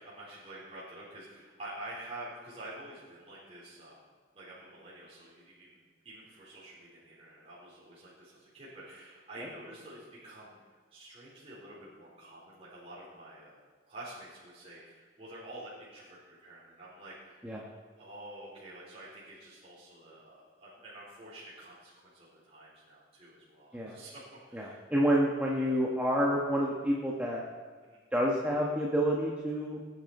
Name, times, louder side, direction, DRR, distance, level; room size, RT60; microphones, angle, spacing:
voice 1, 0.0-4.0 4.3-17.5 18.0-24.2 24.5-24.8 27.8-28.0, right 1 dB, 30° right, -9 dB, 4.3 m, -48 dB
voice 2, 24.5-27.4 28.1-29.8, equal, 10° right, -4 dB, 1.4 m, -29 dB
20.0 x 9.7 x 4.4 m, 1.5 s
head